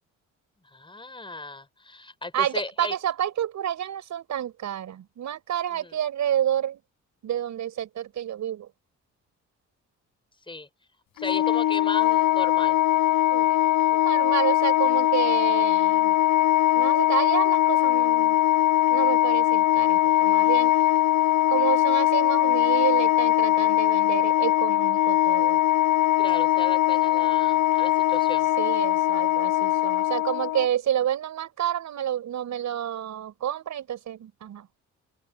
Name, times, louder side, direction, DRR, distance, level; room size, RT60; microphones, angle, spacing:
voice 1, 0.7-2.9 5.7-6.0 10.5-10.7 11.2-12.8 26.2-28.5, left 2 dB, 15° left, 5.4 m, -36 dB
voice 2, 2.3-6.8 7.2-8.7 13.3-16.1 16.7-18.4 18.9-20.7 21.5-25.6 28.6-34.7, right 10 dB, 70° right, 6.8 m, -29 dB
Wind instrument woodwind instrument, 11.2-30.7, left 14 dB, 85° left, 4.3 m, -21 dB
open air
cardioid pair, 90°, 30 cm